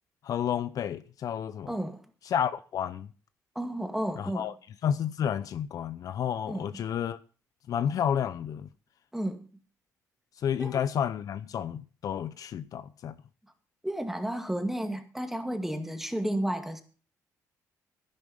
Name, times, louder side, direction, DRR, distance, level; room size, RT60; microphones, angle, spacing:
voice 1, 0.2-1.7 2.3-3.1 4.2-4.5 4.8-7.2 7.7-8.7 10.4-13.1, left 8 dB, 60° left, 0.7 m, -31 dB
voice 2, 1.7-2.1 3.6-4.5 6.5-6.8 9.1-9.4 10.6-10.8 13.8-16.8, right 1 dB, 5° right, 2.1 m, -32 dB
11.0 x 11.0 x 5.5 m
cardioid pair, 85°, 7 cm